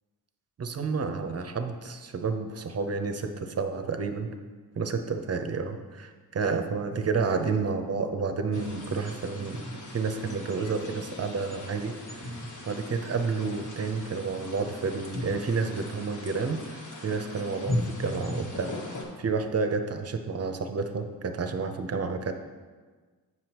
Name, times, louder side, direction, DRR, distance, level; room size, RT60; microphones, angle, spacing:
voice 1, 0.6-4.3 4.8-9.6 9.9-11.9 12.3-12.4 12.7-22.3, right 4 dB, 40° right, 7 dB, 0.7 m, -30 dB
sound 1, 8.5-19.0, left 1 dB, 50° left, 1.7 m, -38 dB
7.6 x 5.9 x 3.0 m, 1.4 s
cardioid pair, 60°, 40 cm